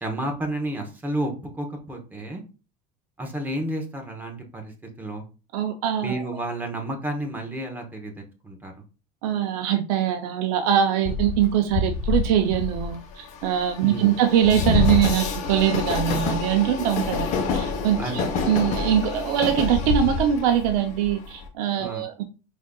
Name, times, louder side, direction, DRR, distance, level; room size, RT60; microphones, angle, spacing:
voice 1, 0.0-2.4 3.2-4.7 5.0-5.2 6.0-8.7 13.8-14.2 18.0-18.3 21.8-22.1, right 1 dB, 10° right, 0.8 m, -31 dB
voice 2, 5.5-6.2 9.2-22.2, right 10 dB, 75° right, 0.6 m, -23 dB
Train, 11.0-21.5, left 4 dB, 40° left, 0.9 m, -27 dB
5.0 x 3.6 x 2.2 m
cardioid pair, 165°, 19 cm